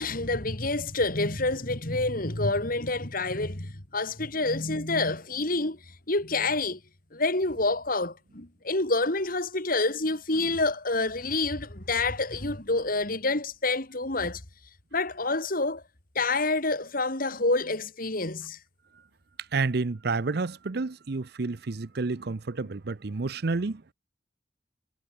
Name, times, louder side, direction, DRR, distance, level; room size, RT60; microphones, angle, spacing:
voice 1, 0.0-5.8 6.1-6.8 7.1-14.4 14.9-15.8 16.1-18.6, left 2 dB, 50° left, 3.2 m, -28 dB
voice 2, 19.5-23.8, right 3 dB, 55° right, 0.7 m, -30 dB
head